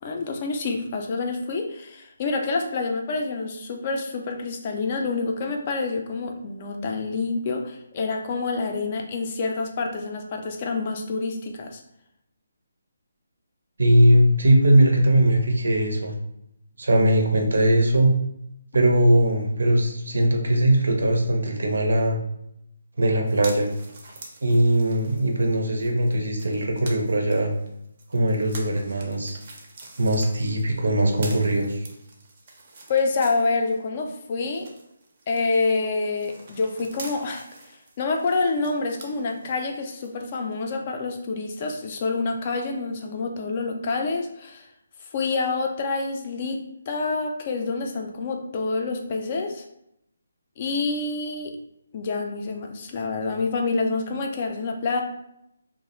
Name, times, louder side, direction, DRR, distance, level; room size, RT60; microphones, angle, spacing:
voice 1, 0.0-11.8 32.9-34.7 35.3-37.4 38.0-44.7 45.1-49.6 50.6-51.5 51.9-55.0, left 3 dB, 30° left, 3 dB, 0.3 m, -27 dB
voice 2, 13.8-16.1 16.8-18.1 18.7-22.2 23.0-23.7 24.4-27.5 28.1-29.4 30.0-31.9, right 1 dB, 85° right, 2 dB, 0.6 m, -20 dB
sound 1, 23.3-34.0 34.3-40.1 40.5-40.6, right 3 dB, 40° right, 0.4 m, -45 dB
2.3 x 2.0 x 3.0 m, 0.78 s
hypercardioid pair, 165°, 0 cm